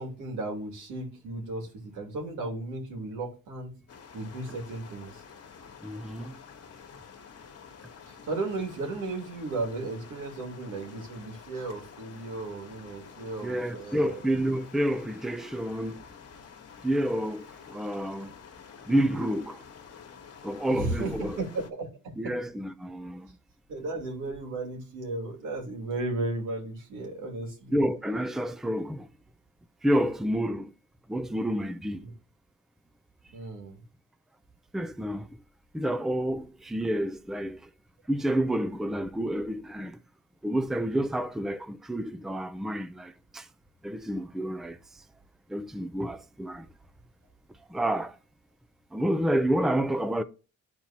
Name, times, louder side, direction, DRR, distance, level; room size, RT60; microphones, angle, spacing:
voice 1, 0.0-3.7 4.1-5.2 8.3-14.2 20.7-21.9 22.2-22.3 23.7-27.8 32.0-32.1 33.3-33.8, right 2 dB, 85° right, 2.7 m, -35 dB
sound 1, 3.9-21.7, left 6 dB, 50° left, 1.5 m, -49 dB
voice 2, 5.8-6.3 13.4-16.0 16.8-17.5 17.7-18.3 18.9-19.6 20.4-21.4 22.2-23.3 27.7-29.1 29.8-30.7 31.1-32.0 34.7-35.3 35.7-37.6 38.1-40.0 40.4-43.4 43.8-44.8 45.5-46.6 47.7-48.1 48.9-50.2, right 1 dB, ahead, 0.5 m, -29 dB
12.0 x 4.3 x 2.9 m
cardioid pair, 90°, 30 cm